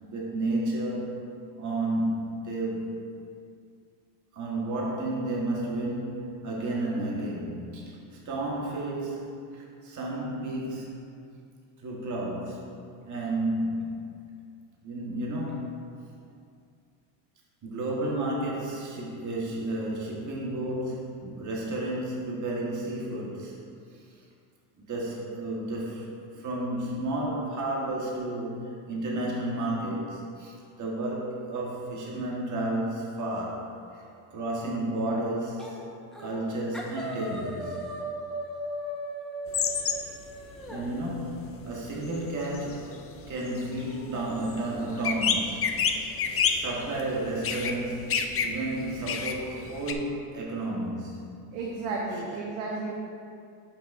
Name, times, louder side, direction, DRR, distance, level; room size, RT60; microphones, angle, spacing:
voice 1, 0.0-1.2 1.5-3.0 4.3-11.0 11.8-14.2 14.8-15.8 17.6-23.6 23.9-24.0 24.8-34.0 34.3-35.8 36.2-37.8 40.7-51.4, right 1 dB, 35° right, -4 dB, 1.4 m, -32 dB
sound 1, 35.6-35.8 36.1-36.5 36.7-40.8, equal, ahead, 1.1 m, -37 dB
sound 2, 39.5-40.2 40.5-49.9, left 6 dB, 30° left, 0.5 m, -30 dB
voice 2, 51.5-52.9, right 3 dB, 90° right, -3 dB, 1.1 m, -32 dB
11.0 x 5.9 x 2.6 m, 2.4 s
cardioid pair, 105°, 49 cm